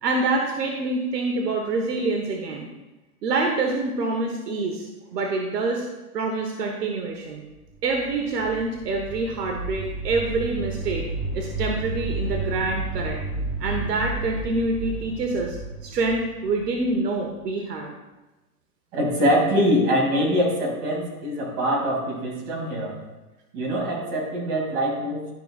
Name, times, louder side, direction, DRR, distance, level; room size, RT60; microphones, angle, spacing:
voice 1, 0.0-2.7 3.2-5.9 6.1-7.4 7.8-11.1 11.3-13.2 13.6-15.6 15.8-17.9, right 3 dB, 80° right, 2 dB, 1.3 m, -26 dB
sound 1, 7.6-17.4, right 2 dB, 10° left, 0.3 m, -32 dB
voice 2, 18.9-22.9 23.5-25.3, equal, 40° right, -2 dB, 2.8 m, -23 dB
12.5 x 6.0 x 2.5 m, 1.1 s
hypercardioid pair, 145°, 47 cm